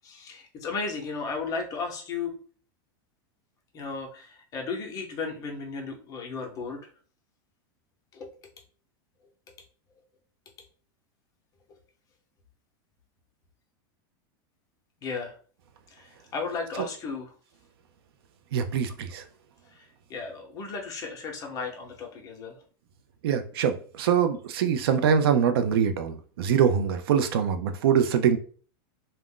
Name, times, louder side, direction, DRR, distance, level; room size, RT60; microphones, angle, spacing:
voice 1, 0.0-2.3 3.7-6.9 8.1-8.5 15.0-15.3 15.9-17.3 19.7-22.6, left 4 dB, 30° left, 2 dB, 0.7 m, -35 dB
voice 2, 18.5-19.2 23.2-28.4, right 7 dB, 85° right, 8 dB, 0.4 m, -24 dB
2.4 x 2.1 x 3.7 m, 0.41 s
supercardioid pair, 145°, 12 cm